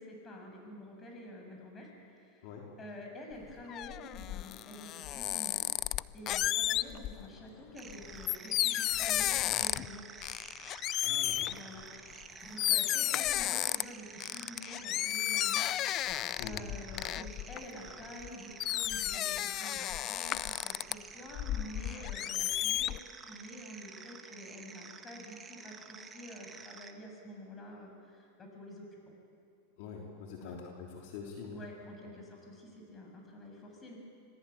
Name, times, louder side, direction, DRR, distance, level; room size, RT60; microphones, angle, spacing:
voice 1, 0.0-2.5 2.8-5.7 6.1-10.1 11.5-16.1 16.4-29.0 30.3-30.6 31.5-34.0, left 1 dB, 20° left, 1 dB, 7.4 m, -48 dB
sound 1, 3.3-7.3 7.8-9.9 10.2-11.6 12.2-12.3 12.6-13.8 14.2-18.3 18.6-20.9 21.3-23.0, left 14 dB, 40° left, 0.5 m, -33 dB
sound 2, 7.8-26.9, right 5 dB, 20° right, 1.7 m, -50 dB
voice 2, 11.0-11.5 16.4-16.7 29.8-31.6 32.0-32.1, left 5 dB, 60° left, 0 dB, 3.3 m, -45 dB
26.0 x 18.5 x 8.7 m, 2.7 s
hypercardioid pair, 115°, 0 cm